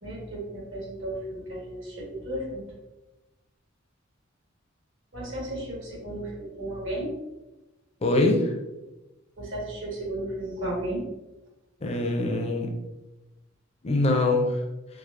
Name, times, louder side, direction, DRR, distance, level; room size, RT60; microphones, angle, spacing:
voice 1, 0.0-2.6 5.1-7.1 9.4-11.0, right 1 dB, 70° right, -3 dB, 1.4 m, -34 dB
voice 2, 8.0-8.5 11.8-12.7 13.8-14.6, left 2 dB, 30° left, 3 dB, 0.5 m, -23 dB
4.7 x 2.5 x 2.5 m, 1.0 s
head